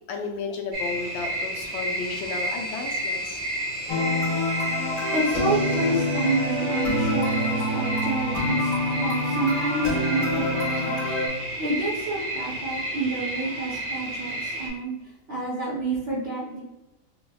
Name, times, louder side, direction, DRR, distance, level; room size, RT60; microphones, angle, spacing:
voice 1, 0.1-3.4 10.8-10.9, left 4 dB, 85° left, 2 dB, 1.4 m, -33 dB
sound 1, 0.7-14.7, right 1 dB, 75° right, 1.9 m, -31 dB
sound 2, 3.9-11.3, left 1 dB, 70° left, 1.4 m, -26 dB
voice 2, 5.1-11.0 11.6-14.9 15.3-16.6, right 2 dB, 50° right, -6 dB, 0.9 m, -29 dB
5.8 x 2.1 x 2.3 m, 0.99 s
omnidirectional pair, 2.0 m